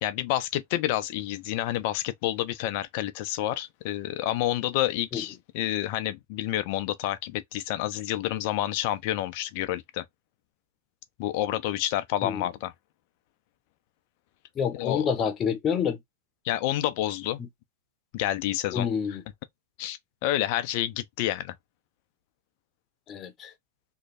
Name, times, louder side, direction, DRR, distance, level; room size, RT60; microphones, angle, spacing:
voice 1, 0.0-10.0 11.2-12.7 14.7-15.3 16.4-17.4 18.1-19.2 19.8-21.5, left 13 dB, 50° left, 0.7 m, -29 dB
voice 2, 14.6-16.0 17.4-17.5 18.7-19.2 23.1-23.5, left 7 dB, 30° left, 1.0 m, -28 dB
3.2 x 2.3 x 4.1 m
hypercardioid pair, 125°, 0 cm